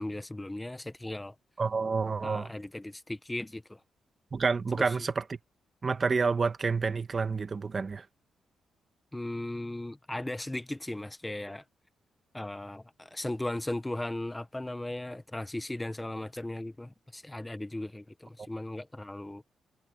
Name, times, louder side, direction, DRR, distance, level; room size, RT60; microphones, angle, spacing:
voice 1, 0.0-1.3 2.2-3.8 4.8-5.0 9.1-11.6 12.3-19.4, left 1 dB, 10° left, 1.2 m, -37 dB
voice 2, 1.6-2.5 4.3-5.4 5.8-8.0, right 4 dB, 40° right, 1.4 m, -29 dB
cardioid pair, 90°, 0 cm